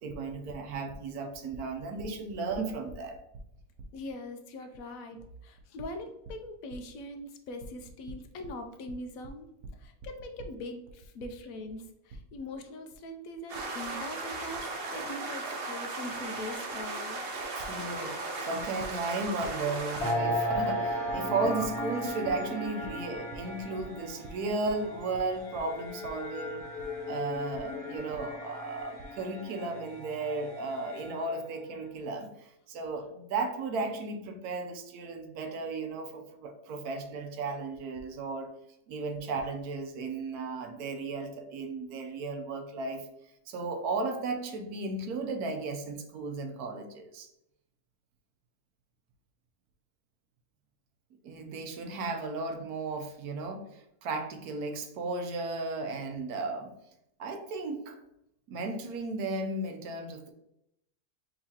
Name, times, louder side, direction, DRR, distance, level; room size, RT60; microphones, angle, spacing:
voice 1, 0.0-3.2 17.6-18.2 18.5-26.7 27.1-38.5 38.9-43.0 43.5-47.3 51.2-56.7 57.2-58.0 58.5-60.3, right 3 dB, 80° right, 5 dB, 1.2 m, -35 dB
voice 2, 3.9-5.2 5.4-9.5 9.8-17.2, left 1 dB, 70° left, 6 dB, 0.9 m, -42 dB
sound 1, 13.5-20.1, right 3 dB, 50° right, 0.8 m, -36 dB
sound 2, 20.0-31.4, left 1 dB, 50° left, 1.3 m, -36 dB
5.4 x 2.9 x 2.8 m, 0.81 s
omnidirectional pair, 1.6 m